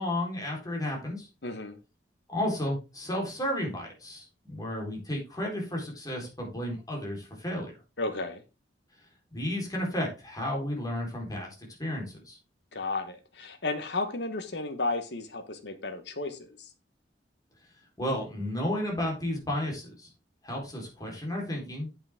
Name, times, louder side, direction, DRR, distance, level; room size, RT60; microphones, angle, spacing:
voice 1, 0.0-1.3 2.3-7.8 9.3-12.4 18.0-20.1 20.4-21.9, left 1 dB, 20° left, 4.1 m, -32 dB
voice 2, 1.4-1.8 8.0-8.4 12.7-16.5, left 3 dB, 65° left, 1.4 m, -33 dB
8.5 x 8.5 x 3.7 m
head